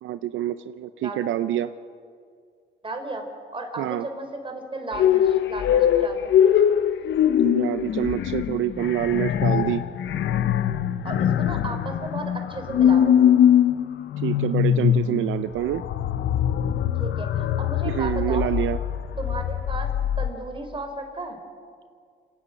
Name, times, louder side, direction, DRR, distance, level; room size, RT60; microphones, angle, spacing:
voice 1, 0.0-1.7 3.8-4.1 7.4-9.8 14.2-15.8 17.8-18.8, right 12 dB, 80° right, 12 dB, 0.6 m, -26 dB
voice 2, 2.8-3.3 3.5-6.3 11.0-13.2 17.0-18.5 19.2-21.4, right 2 dB, 25° right, 5 dB, 3.7 m, -34 dB
sound 1, 4.9-20.3, left 9 dB, 65° left, 0.8 m, -22 dB
28.5 x 10.0 x 9.0 m, 2.1 s
cardioid pair, 90°, 20 cm